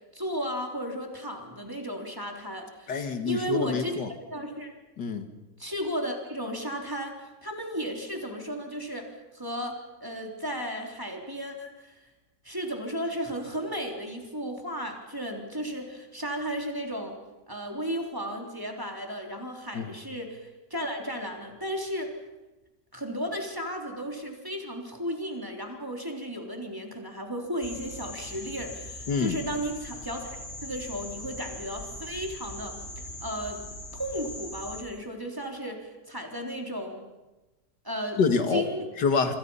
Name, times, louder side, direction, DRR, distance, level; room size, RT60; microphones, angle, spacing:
voice 1, 0.1-3.9 4.3-4.7 5.6-11.9 12.4-17.2 17.5-22.1 22.9-33.6 33.9-37.0 37.8-38.2 38.5-38.9, equal, 10° right, 2 dB, 3.6 m, -34 dB
voice 2, 2.9-4.1 5.0-5.3 19.7-19.9 29.1-29.4 38.2-38.6 39.0-39.3, left 5 dB, 85° left, 7 dB, 2.4 m, -26 dB
sound 1, 27.6-34.8, left 1 dB, 35° left, 3.3 m, -41 dB
26.5 x 26.5 x 5.6 m, 1.1 s
omnidirectional pair, 1.8 m